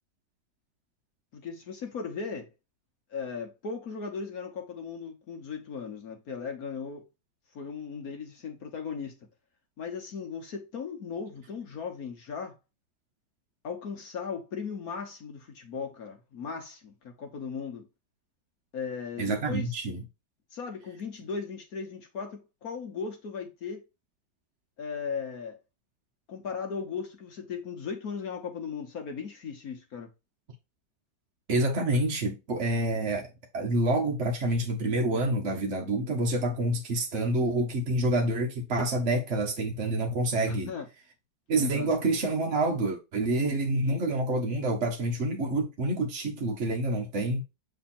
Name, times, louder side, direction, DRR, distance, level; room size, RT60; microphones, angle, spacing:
voice 1, 1.3-2.5 3.1-7.0 7.5-9.2 9.8-12.5 13.6-17.9 18.7-19.8 20.5-23.8 24.8-25.6 26.3-30.1 40.5-40.8 41.5-41.9, left 5 dB, 55° left, 1.4 m, -37 dB
voice 2, 19.2-20.0 31.5-33.3 33.5-40.7 41.5-47.4, right 2 dB, 45° right, 1.0 m, -27 dB
7.3 x 3.4 x 4.2 m
omnidirectional pair, 2.1 m